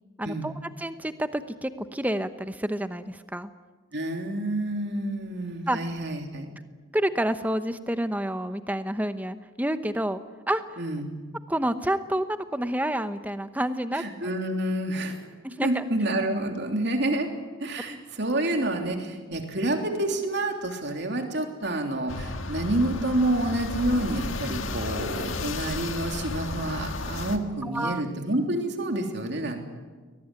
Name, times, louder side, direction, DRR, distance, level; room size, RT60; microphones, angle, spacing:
voice 1, 0.2-0.5 0.8-3.5 5.7-5.8 6.9-10.2 10.5-10.8 11.5-14.0 15.4-15.8 27.7-28.0, right 1 dB, 10° right, 10 dB, 0.9 m, -28 dB
voice 2, 3.9-6.5 10.8-11.1 14.0-15.2 15.6-17.3 17.6-29.6, right 1 dB, 55° right, 4 dB, 3.2 m, -28 dB
sound 1, 22.1-27.4, left 2 dB, 70° left, 1.9 m, -33 dB
22.5 x 19.0 x 9.8 m, 1.4 s
head